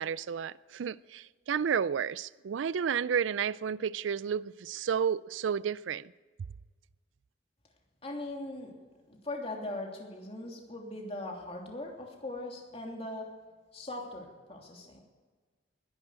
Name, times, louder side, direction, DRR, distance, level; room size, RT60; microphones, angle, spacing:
voice 1, 0.0-6.1, right 7 dB, 80° right, 0.4 m, -31 dB
voice 2, 8.0-8.7 9.1-13.3 13.7-15.0, left 2 dB, 30° left, 3.0 m, -40 dB
20.5 x 11.0 x 6.3 m
head